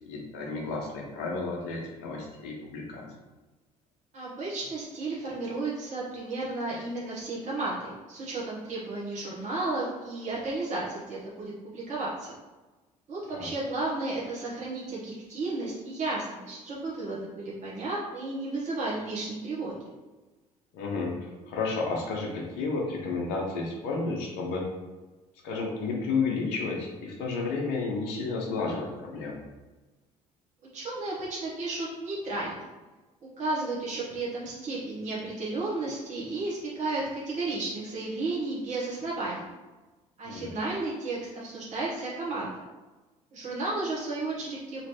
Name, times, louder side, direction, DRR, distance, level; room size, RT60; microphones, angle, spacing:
voice 1, 0.1-3.0 13.3-13.5 20.7-21.1 21.5-24.6 25.4-29.4 40.2-40.5, left 4 dB, 65° left, 0 dB, 0.8 m, -31 dB
voice 2, 4.1-12.3 13.1-19.9 30.7-32.6 33.4-39.5 40.2-42.5 43.3-44.9, right 2 dB, 40° right, -6 dB, 1.1 m, -33 dB
3.0 x 2.9 x 3.0 m, 1.2 s
figure-of-eight pair, 55°, 19 cm